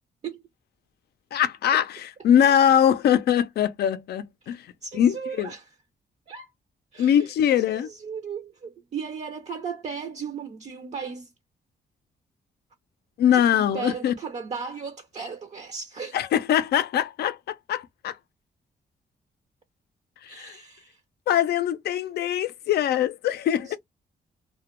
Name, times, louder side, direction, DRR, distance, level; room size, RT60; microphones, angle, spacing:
voice 1, 1.3-5.5 7.0-7.9 13.2-14.1 16.1-18.2 20.2-20.5 21.3-23.8, left 9 dB, 80° left, 0.4 m, -22 dB
voice 2, 4.4-5.7 6.3-6.5 6.9-7.2 7.7-11.3 13.3-16.2 20.3-21.0 23.6-23.8, right 6 dB, 45° right, 0.5 m, -36 dB
2.2 x 2.1 x 2.9 m
cardioid pair, 90°, 16 cm